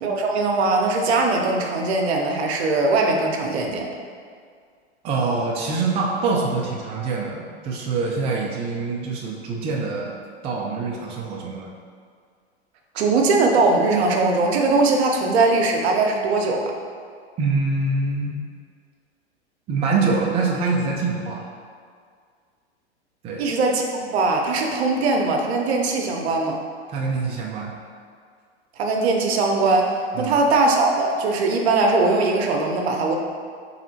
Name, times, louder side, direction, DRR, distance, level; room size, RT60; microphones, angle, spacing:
voice 1, 0.0-3.9 12.9-16.7 23.4-26.6 28.8-33.1, right 3 dB, 65° right, 1 dB, 0.7 m, -20 dB
voice 2, 5.0-10.1 10.4-11.7 17.4-18.4 19.7-21.5 23.2-23.4 26.9-27.7 30.2-30.3, right 3 dB, 20° right, -2 dB, 0.4 m, -24 dB
4.1 x 3.1 x 2.7 m, 2.1 s
hypercardioid pair, 105°, 34 cm